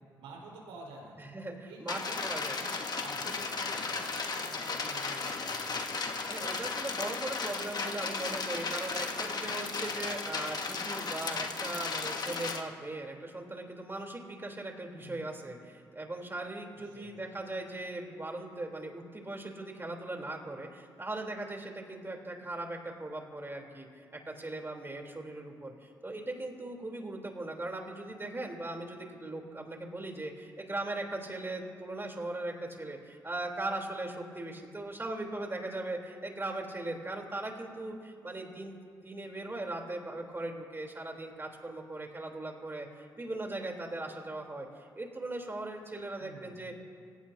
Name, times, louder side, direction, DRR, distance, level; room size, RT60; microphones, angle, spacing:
voice 1, 0.2-1.1 1.5-5.9 15.0-15.5 16.7-17.2 46.2-46.6, right 3 dB, 80° right, -3 dB, 4.7 m, -51 dB
voice 2, 1.2-2.6 6.3-46.7, right 2 dB, 25° right, 1 dB, 3.7 m, -39 dB
sound 1, 1.9-12.6, left 4 dB, 50° left, 1.8 m, -35 dB
25.0 x 16.5 x 2.9 m, 2.1 s
hypercardioid pair, 45°, 9 cm